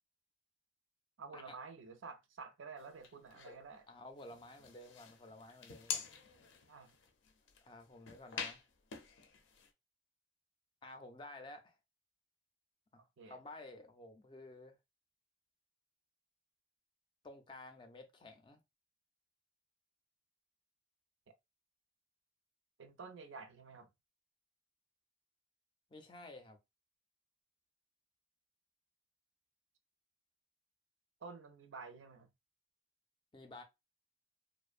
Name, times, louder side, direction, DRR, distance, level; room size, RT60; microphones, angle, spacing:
voice 1, 1.2-3.9 6.7-7.0 13.0-13.4 22.8-23.9 31.2-32.3, right 4 dB, 90° right, 0.5 m, -51 dB
sound 1, 2.8-3.6 4.2-9.7, left 7 dB, 90° left, 0.5 m, -46 dB
voice 2, 3.9-6.1 7.6-8.6 10.8-11.8 12.9-14.7 17.2-18.6 25.9-26.6 33.3-33.6, left 2 dB, 25° left, 0.4 m, -53 dB
2.5 x 2.0 x 2.4 m
head